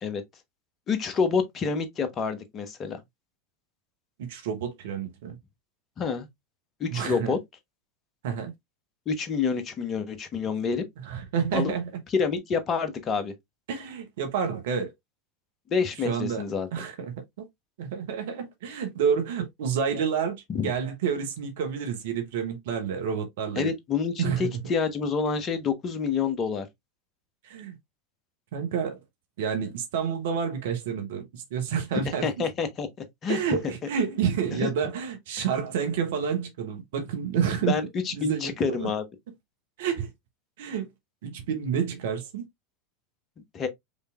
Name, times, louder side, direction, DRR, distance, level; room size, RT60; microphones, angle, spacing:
voice 1, 0.9-3.0 6.0-6.3 6.8-7.4 9.1-10.8 11.5-11.7 12.1-13.3 15.7-16.7 20.5-20.7 23.6-26.7 32.2-32.9 33.2-33.4 34.5-34.7 37.7-39.0 43.5-43.7, left 5 dB, 30° left, 1.1 m, -27 dB
voice 2, 4.2-5.4 6.9-7.3 8.2-8.5 11.1-11.9 13.7-14.9 16.0-16.4 16.7-17.1 17.8-23.7 24.2-24.6 27.4-27.8 28.5-29.0 29.4-32.3 33.3-37.8 38.1-38.9 39.8-40.1 40.6-40.9 41.2-42.4, right 7 dB, 60° right, 1.1 m, -29 dB
5.0 x 3.3 x 2.4 m
figure-of-eight pair, 85°, 0 cm